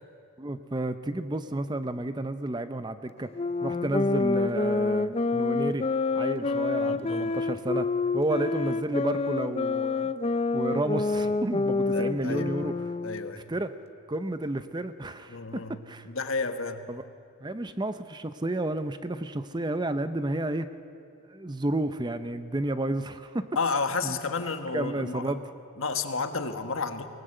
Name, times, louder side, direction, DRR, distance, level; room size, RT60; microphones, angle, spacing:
voice 1, 0.4-3.3 3.6-5.9 6.1-7.9 8.1-10.1 10.5-12.8 13.5-13.7 14.1-16.1 16.9-17.0 17.4-20.7 21.3-23.5 24.0-24.2 24.7-25.4, right 1 dB, 20° right, 11 dB, 0.6 m, -31 dB
sound 1, 3.3-13.4, left 3 dB, 30° left, 0.5 m, -28 dB
voice 2, 6.3-7.4 11.9-12.5 13.0-13.4 15.3-15.8 16.0-16.9 23.5-25.3 25.8-27.1, left 4 dB, 70° left, 8 dB, 1.4 m, -32 dB
24.5 x 18.5 x 7.9 m, 2.6 s
head